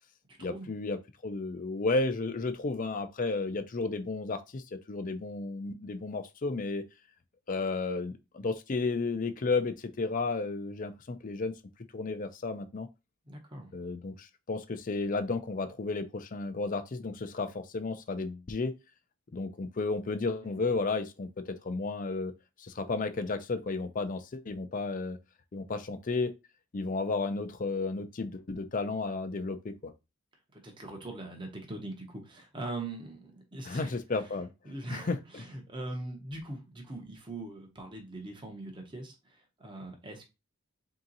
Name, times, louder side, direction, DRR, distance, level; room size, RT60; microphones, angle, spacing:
voice 1, 0.4-6.8 7.5-11.5 11.9-12.9 13.7-18.7 19.3-22.3 22.6-25.2 25.5-26.3 26.7-29.9 33.6-34.5 34.9-35.4, left 3 dB, 40° left, 0.5 m, -33 dB
voice 2, 13.3-13.8 20.4-20.6 30.5-34.0 34.6-40.3, right 2 dB, 20° right, 0.8 m, -42 dB
3.6 x 2.9 x 3.9 m
head